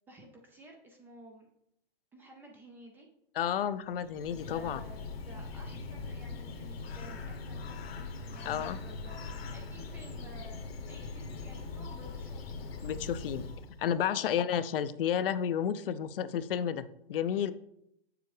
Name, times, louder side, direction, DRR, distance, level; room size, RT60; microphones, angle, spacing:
voice 1, 0.1-1.5 2.1-3.1 4.3-12.5 14.1-14.3, right 1 dB, 10° right, 2 dB, 0.3 m, -53 dB
voice 2, 3.4-4.8 8.4-8.8 12.8-13.4 13.8-17.5, left 9 dB, 70° left, 13 dB, 0.6 m, -31 dB
Bird, 3.9-13.9, left 4 dB, 85° left, 1.3 m, -41 dB
7.0 x 6.9 x 3.2 m, 0.78 s
hypercardioid pair, 145°, 29 cm